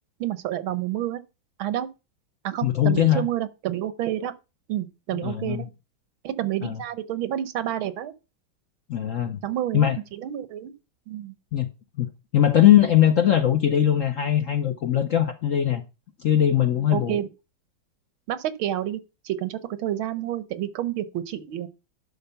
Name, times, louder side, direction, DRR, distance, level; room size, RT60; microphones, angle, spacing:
voice 1, 0.2-1.2 1.6-1.9 2.4-4.3 4.7-5.7 6.2-8.1 9.4-10.7 11.1-11.3 16.9-17.3 18.3-21.7, right 12 dB, 80° right, 1.7 m, -29 dB
voice 2, 2.6-3.3 5.1-5.7 6.6-6.8 8.9-9.4 9.7-10.0 11.5-11.7 12.0-15.8 16.2-17.2, left 10 dB, 60° left, 0.8 m, -20 dB
11.5 x 4.2 x 6.9 m
omnidirectional pair, 2.2 m